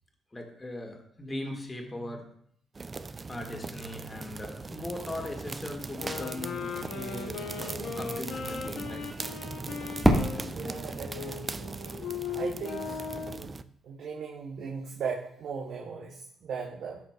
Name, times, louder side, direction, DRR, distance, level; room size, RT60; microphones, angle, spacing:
voice 1, 0.3-2.3 3.3-9.0, left 1 dB, 25° left, 2 dB, 2.0 m, -39 dB
sound 1, 2.8-13.6, right 4 dB, 35° right, 0.4 m, -40 dB
sound 2, 5.9-13.5, left 6 dB, 75° left, 1.1 m, -38 dB
Fireworks, 10.0-12.9, equal, 10° right, 1.6 m, -29 dB
voice 2, 10.5-11.5 12.3-13.0 13.3-13.5 13.8-17.0, right 6 dB, 70° right, -2 dB, 1.3 m, -37 dB
13.5 x 5.6 x 2.4 m, 0.67 s
supercardioid pair, 60°, 0 cm